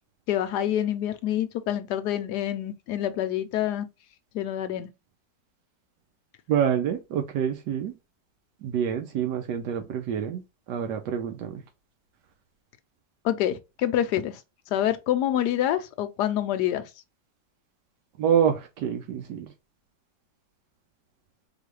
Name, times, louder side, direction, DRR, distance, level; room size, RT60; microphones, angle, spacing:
voice 1, 0.3-3.9 4.3-4.9 13.2-14.4 14.7-16.9, left 11 dB, 70° left, 1.1 m, -27 dB
voice 2, 6.5-7.9 8.6-10.4 10.7-11.6 18.2-19.5, right 8 dB, 75° right, 1.2 m, -27 dB
4.0 x 3.0 x 3.1 m
omnidirectional pair, 2.0 m